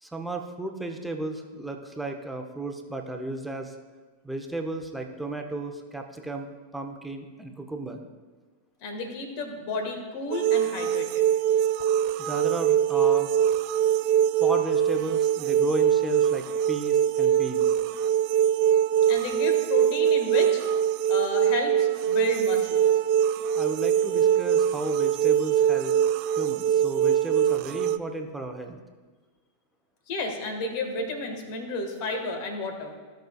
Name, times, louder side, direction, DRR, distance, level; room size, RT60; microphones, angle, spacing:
voice 1, 0.0-3.7 4.2-8.0 12.2-13.3 14.4-17.7 23.5-25.9 26.4-28.8, right 2 dB, 5° right, 3 dB, 0.9 m, -34 dB
voice 2, 8.8-11.2 19.1-20.6 21.1-23.0 30.1-32.9, left 2 dB, 45° left, 4 dB, 1.8 m, -32 dB
sound 1, 10.3-28.0, right 9 dB, 45° right, 0.3 m, -23 dB
16.0 x 6.3 x 2.4 m, 1.4 s
figure-of-eight pair, 90°, 0 cm